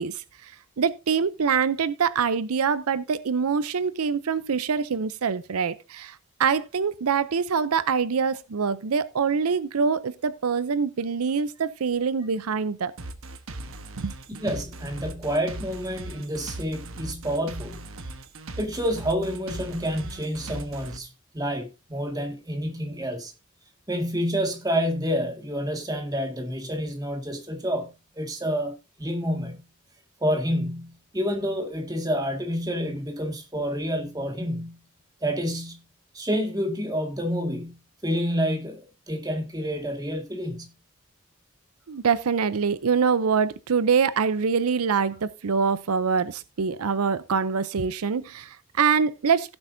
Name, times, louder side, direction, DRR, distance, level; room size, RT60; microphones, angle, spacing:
voice 1, 0.0-12.9 14.0-14.4 41.9-49.5, right 6 dB, 85° right, 0.6 m, -25 dB
sound 1, 13.0-21.0, right 2 dB, 70° right, 1.2 m, -38 dB
voice 2, 14.4-17.9 18.6-21.1 21.3-23.3 23.9-29.6 30.2-34.8 35.2-35.8 36.1-37.8 38.0-38.8 39.1-40.7, equal, 15° right, 1.9 m, -28 dB
16.0 x 7.8 x 2.6 m
head